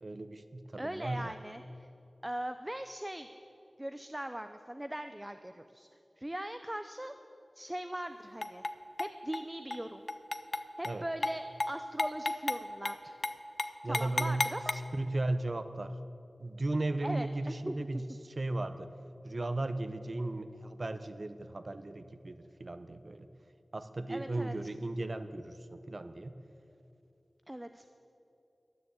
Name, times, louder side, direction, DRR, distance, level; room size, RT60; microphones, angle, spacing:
voice 1, 0.0-1.3 10.8-11.0 13.8-14.4 14.7-16.0 16.4-18.1 18.4-18.9 19.2-23.3 23.7-26.4, right 2 dB, 50° right, 11 dB, 0.7 m, -36 dB
voice 2, 0.8-1.9 2.2-3.3 3.8-5.9 6.2-7.1 7.6-8.6 9.0-10.1 10.8-13.2 13.8-14.8 17.0-18.0 24.1-24.5 27.5-27.9, right 1 dB, 15° right, 9 dB, 0.5 m, -40 dB
sound 1, 8.4-8.7 9.0-9.4 9.7-9.8 10.1-10.9 11.2-11.3 11.6-11.7 12.0-12.6 12.8-13.0 13.2-13.3 13.6-14.7, left 2 dB, 40° left, 0.6 m, -32 dB
12.5 x 9.5 x 8.0 m, 2.8 s
wide cardioid pair, 80°, 0 cm